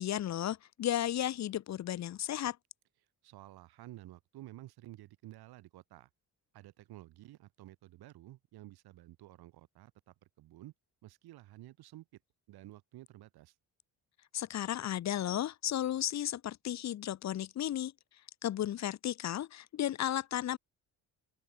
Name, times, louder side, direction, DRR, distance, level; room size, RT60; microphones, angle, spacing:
voice 1, 0.0-2.6 14.3-17.9 18.4-20.6, left 12 dB, 45° left, 1.3 m, -34 dB
voice 2, 3.2-6.1 6.5-10.7 11.0-12.2 12.5-13.6, right 16 dB, 85° right, 7.2 m, -52 dB
open air
cardioid pair, 175°, 37 cm